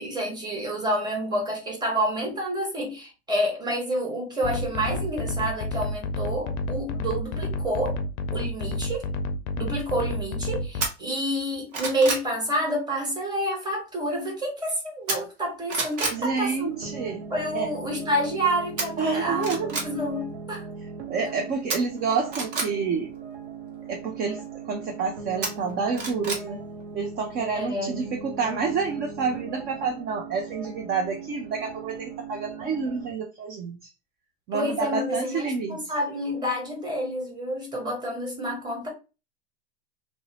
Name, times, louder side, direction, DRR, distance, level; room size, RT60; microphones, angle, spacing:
voice 1, 0.0-8.0 8.3-9.1 9.6-16.8 17.3-20.6 27.5-28.2 34.5-38.9, equal, 15° right, 1.2 m, -28 dB
sound 1, 4.4-10.9, left 2 dB, 60° left, 0.5 m, -30 dB
sound 2, 10.8-10.9 11.4-12.3 15.1-15.4 15.7-16.2 18.8-18.9 19.4-19.9 21.7-22.7 25.4-26.4 26.8-26.9, right 3 dB, 45° right, 1.1 m, -29 dB
voice 2, 16.1-17.3 17.5-17.7 19.0-19.7 21.1-23.1 23.9-26.6 26.9-33.9 34.5-35.8, right 5 dB, 30° right, 0.4 m, -28 dB
sound 3, 16.2-33.1, right 5 dB, 85° right, 0.7 m, -40 dB
2.6 x 2.0 x 2.8 m
hypercardioid pair, 100°, 33 cm